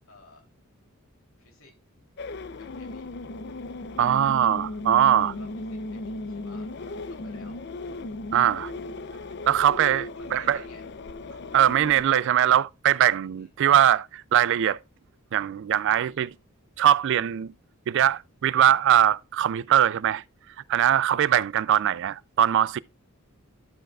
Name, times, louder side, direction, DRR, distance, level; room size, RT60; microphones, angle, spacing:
voice 1, 0.1-0.4 1.4-1.7 2.6-3.2 4.0-4.4 5.0-7.6 9.5-9.8 10.1-10.9 13.3-13.5 21.0-21.2, left 2 dB, 70° left, 3.1 m, -53 dB
sound 1, 2.2-12.1, left 2 dB, 50° left, 0.6 m, -36 dB
voice 2, 4.0-5.3 8.3-8.7 9.5-10.6 11.5-14.8 15.3-16.3 16.8-17.5 17.9-20.2 20.7-22.8, right 10 dB, 55° right, 0.3 m, -21 dB
11.5 x 7.7 x 2.4 m
head